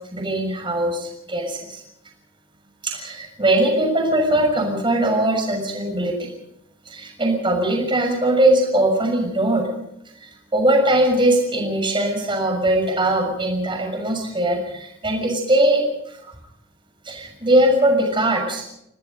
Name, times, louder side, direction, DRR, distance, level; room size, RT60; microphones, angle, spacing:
voice 1, 0.1-1.8 2.8-6.3 6.9-9.7 10.5-16.2 17.0-18.6, right 1 dB, 25° right, 2 dB, 6.3 m, -20 dB
28.0 x 19.0 x 5.3 m, 0.78 s
head